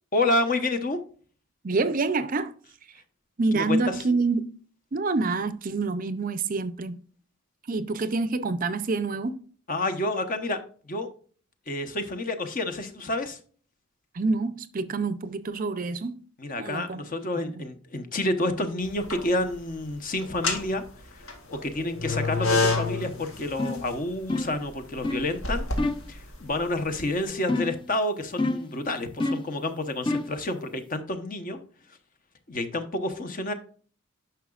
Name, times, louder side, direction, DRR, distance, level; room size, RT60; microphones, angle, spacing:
voice 1, 0.1-1.0 3.5-3.9 9.7-10.6 10.9-11.1 11.7-13.4 16.4-20.8 21.1-25.7 26.1-31.6 32.5-33.5, left 2 dB, 40° left, 1.0 m, -29 dB
voice 2, 1.6-2.5 3.4-4.5 4.9-7.0 7.7-9.4 14.1-16.1 16.6-17.0 17.4-17.6, right 3 dB, 40° right, 0.5 m, -27 dB
sound 1, 18.8-19.5 20.2-27.1, left 3 dB, 75° left, 1.9 m, -29 dB
sound 2, 23.6-23.9 24.3-24.6 25.0-25.3 25.8-26.1 27.5-27.9 28.4-28.7 29.2-29.5 30.1-30.4, left 2 dB, 25° left, 0.6 m, -28 dB
10.0 x 5.8 x 2.4 m
head